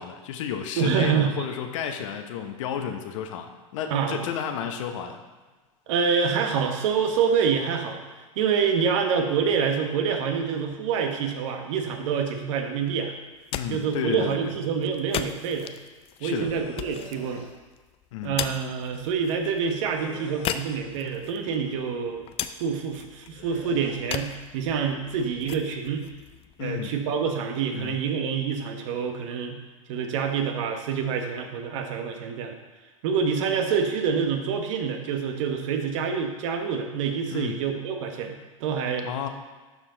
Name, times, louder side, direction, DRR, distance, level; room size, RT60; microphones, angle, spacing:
voice 1, 0.0-5.2 13.5-14.5 16.2-16.5 18.1-18.4 26.6-26.9 27.7-28.0 37.3-37.6 39.0-39.3, left 8 dB, 65° left, 6 dB, 1.0 m, -32 dB
voice 2, 0.8-1.4 3.9-4.2 5.9-8.0 8.4-13.1 13.7-15.7 16.2-17.4 18.2-22.2 22.6-26.0 26.6-29.6 29.9-32.5 33.0-39.3, right 6 dB, 65° right, 4 dB, 1.2 m, -26 dB
sound 1, 13.2-27.2, left 10 dB, 35° left, 0.5 m, -38 dB
sound 2, 16.4-17.5 19.9-20.9 23.3-24.0, left 5 dB, 50° left, 2.2 m, -45 dB
11.5 x 4.6 x 3.9 m, 1.3 s
hypercardioid pair, 95°, 17 cm